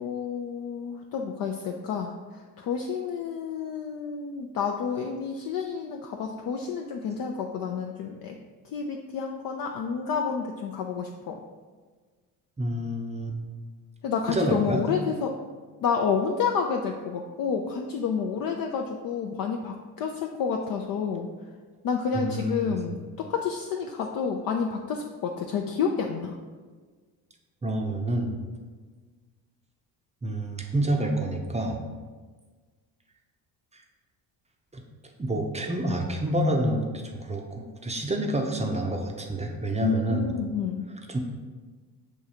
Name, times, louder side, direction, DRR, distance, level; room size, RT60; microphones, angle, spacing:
voice 1, 0.0-8.4 8.6-11.4 14.0-15.4 15.8-21.3 21.8-26.4 39.8-40.9, left 6 dB, 45° left, 2 dB, 0.4 m, -29 dB
voice 2, 12.6-13.3 14.3-14.8 22.1-22.7 27.6-28.3 30.2-31.8 33.7-33.8 34.7-34.8 35.2-36.8 37.2-40.3 41.1-41.2, right 1 dB, 15° right, 2 dB, 0.6 m, -28 dB
6.3 x 2.3 x 2.8 m, 1.4 s
hypercardioid pair, 50°, 50 cm